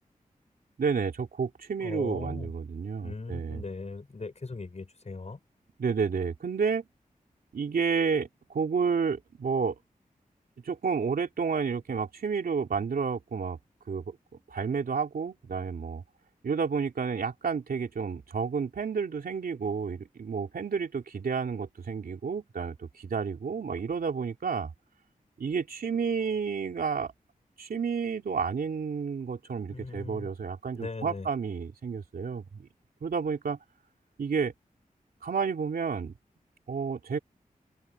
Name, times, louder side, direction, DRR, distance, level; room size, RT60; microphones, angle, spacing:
voice 1, 0.8-3.6 5.8-6.8 7.5-9.7 10.6-13.6 13.9-14.2 14.5-16.0 16.4-24.7 25.4-27.1 27.6-32.7 33.0-33.6 34.2-34.5 35.2-36.1 36.7-37.2, right 5 dB, 90° right, 3.3 m, -30 dB
voice 2, 1.8-2.5 3.0-5.4 29.7-30.3 30.7-31.3, left 3 dB, 50° left, 4.6 m, -39 dB
open air
cardioid pair, 60°, 15 cm